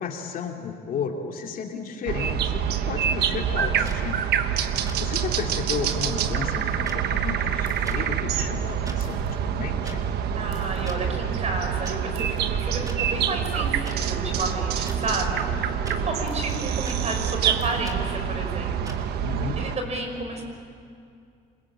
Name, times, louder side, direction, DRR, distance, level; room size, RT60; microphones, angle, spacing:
voice 1, 0.0-4.3 4.8-10.0 19.2-19.6, left 6 dB, 55° left, 2 dB, 3.0 m, -33 dB
sound 1, 2.1-19.8, right 8 dB, 75° right, 1.3 m, -26 dB
sound 2, 3.8-4.0 4.9-5.0 5.8-6.0 6.9-7.0 7.8-8.0 8.7-9.0 9.8-10.0 10.9-11.0 11.8-12.0 12.9-13.0 13.8-14.0 14.8-15.0 15.8-16.0 16.8-17.0 17.8-18.0 18.8-19.0, right 2 dB, 20° right, 3.3 m, -41 dB
sound 3, 7.6-8.3 9.0-9.4 10.5-10.8 12.1-12.5 13.4-13.8 14.5-14.6 14.9-15.2 15.8-15.9 16.3-16.6 17.6-17.7, right 5 dB, 90° right, 7.2 m, -53 dB
voice 2, 10.3-19.0 19.6-20.4, right 2 dB, 40° right, 4 dB, 5.9 m, -31 dB
27.5 x 21.5 x 9.1 m, 2.4 s
cardioid pair, 110°, 17 cm